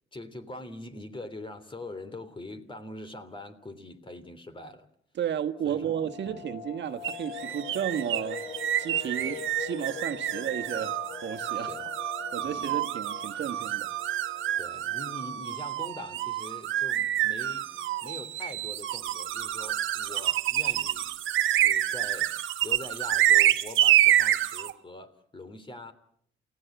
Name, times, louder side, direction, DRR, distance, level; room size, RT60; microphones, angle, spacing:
voice 1, 0.1-4.9 5.6-6.4 9.2-9.4 11.5-11.9 12.4-12.8 14.6-17.7 18.0-21.2 21.6-22.3 22.6-25.9, left 2 dB, 25° left, 3.2 m, -43 dB
voice 2, 5.2-8.5 8.8-11.0 11.2-11.7 12.3-13.9, right 9 dB, 65° right, 1.5 m, -33 dB
sound 1, 5.5-16.3 16.6-16.7 17.1-17.3 17.7-18.1 18.7-18.8 18.9-19.5 19.7-19.8, left 6 dB, 40° left, 2.8 m, -43 dB
sound 2, 7.0-24.7, right 12 dB, 80° right, 1.2 m, -27 dB
29.0 x 17.0 x 8.1 m
cardioid pair, 90°, 20 cm